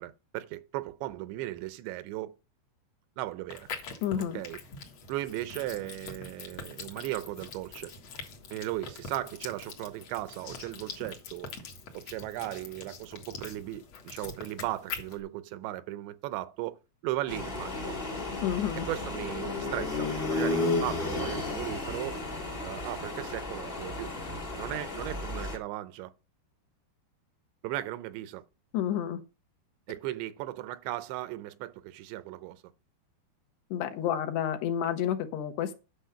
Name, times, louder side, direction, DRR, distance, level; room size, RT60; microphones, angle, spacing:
voice 1, 0.0-2.3 3.2-3.7 4.3-4.6 5.1-7.9 8.5-11.5 11.9-18.0 18.9-22.3 22.6-24.1 24.5-26.1 27.6-28.4 29.9-32.6, right 15 dB, 80° right, 2.8 m, -37 dB
sound 1, 3.5-15.2, left 5 dB, 55° left, 1.8 m, -44 dB
voice 2, 4.0-4.4 18.4-18.9 28.7-29.2 33.7-35.7, left 10 dB, 75° left, 2.9 m, -30 dB
sound 2, 17.3-25.6, left 3 dB, 35° left, 0.8 m, -33 dB
10.0 x 6.2 x 5.7 m
omnidirectional pair, 5.2 m